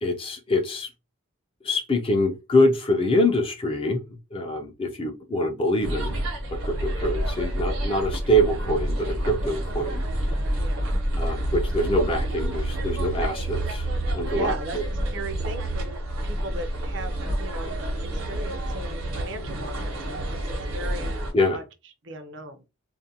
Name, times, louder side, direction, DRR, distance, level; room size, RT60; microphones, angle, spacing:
voice 1, 0.0-0.9 1.6-4.0 4.3-6.1 6.5-10.0 11.1-13.9 14.1-14.8 21.3-21.6, left 1 dB, 25° left, 0.4 m, -24 dB
sound 1, 5.8-21.3, right 1 dB, 75° right, 0.9 m, -28 dB
voice 2, 10.4-11.0 14.2-21.6 22.0-22.6, right 2 dB, 60° right, 0.5 m, -38 dB
2.4 x 2.1 x 2.7 m
head